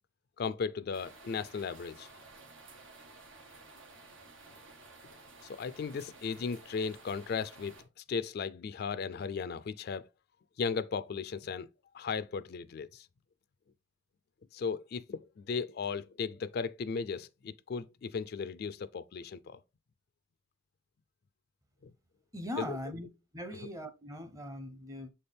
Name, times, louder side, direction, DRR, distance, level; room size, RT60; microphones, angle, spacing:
voice 1, 0.4-2.1 5.5-7.7 8.1-10.0 10.6-11.7 11.9-13.1 14.5-19.6 21.8-21.9 22.7-22.8, left 5 dB, 55° left, 0.4 m, -36 dB
sound 1, 0.9-7.8, right 3 dB, 85° right, 1.5 m, -54 dB
voice 2, 22.3-23.1 23.3-25.1, left 1 dB, 15° right, 0.7 m, -40 dB
7.1 x 4.3 x 3.3 m
head